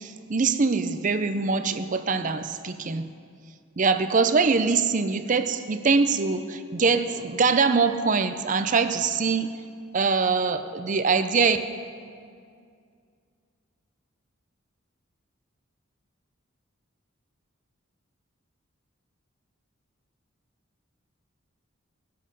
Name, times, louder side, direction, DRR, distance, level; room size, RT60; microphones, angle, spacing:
voice 1, 0.0-3.0 3.8-9.5 9.9-11.6, right 4 dB, 40° right, 10 dB, 0.5 m, -23 dB
18.5 x 8.5 x 5.4 m, 2.2 s
head